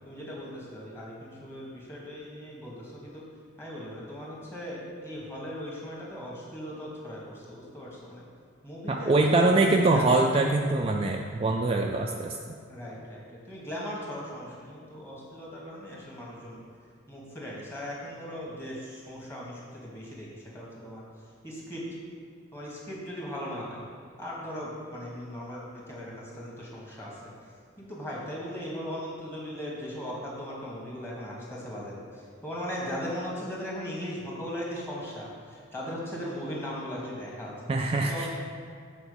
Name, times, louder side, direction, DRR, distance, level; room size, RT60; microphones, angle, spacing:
voice 1, 0.0-3.2 3.6-8.2 8.6-10.0 12.7-16.6 17.1-20.3 20.5-21.0 21.4-21.8 22.5-23.8 24.2-27.3 27.8-37.5 38.0-38.3, equal, 10° left, -5 dB, 1.6 m, -38 dB
voice 2, 8.9-12.3 37.7-38.3, right 2 dB, 30° right, 1 dB, 0.3 m, -23 dB
7.0 x 4.3 x 6.8 m, 2.2 s
head